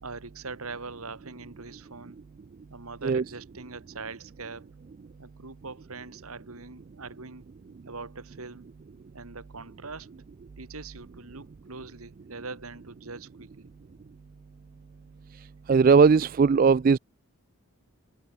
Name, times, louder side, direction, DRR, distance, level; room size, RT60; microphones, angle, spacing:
voice 1, 0.0-2.2 2.7-4.7 5.2-7.5 7.8-8.7 9.1-10.1 10.6-13.7, right 4 dB, 80° right, 2.3 m, -42 dB
voice 2, 15.7-17.0, right 5 dB, 40° right, 0.3 m, -18 dB
head